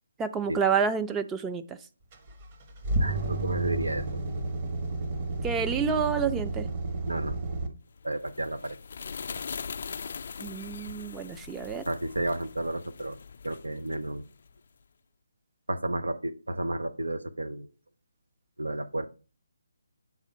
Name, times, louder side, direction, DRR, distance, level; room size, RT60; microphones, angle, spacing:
voice 1, 0.2-1.8 5.4-6.7 10.4-11.8, right 6 dB, 10° right, 8 dB, 0.5 m, -29 dB
sound 1, 2.1-7.7, right 2 dB, 35° right, 1.2 m, -31 dB
voice 2, 3.0-4.0 7.1-7.4 8.0-8.8 11.8-13.2 13.4-14.2 15.7-17.7 18.6-19.1, right 1 dB, 85° right, 10 dB, 0.8 m, -32 dB
sound 2, 8.0-14.6, left 6 dB, 55° left, 0.4 m, -41 dB
8.5 x 3.6 x 5.2 m, 0.36 s
figure-of-eight pair, 150°, 0 cm